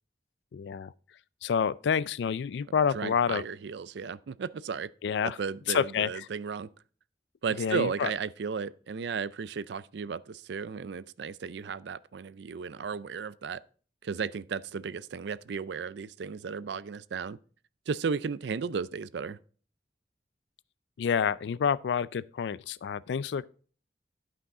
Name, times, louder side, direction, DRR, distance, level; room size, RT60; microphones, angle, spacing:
voice 1, 0.5-0.9 1.4-3.4 5.0-5.4 5.7-6.3 7.6-8.1 21.0-23.5, left 7 dB, 80° left, 0.3 m, -28 dB
voice 2, 2.9-4.9 5.2-6.7 7.4-13.6 14.0-17.4 17.9-19.4, right 5 dB, 75° right, 0.4 m, -34 dB
12.0 x 5.6 x 3.7 m
head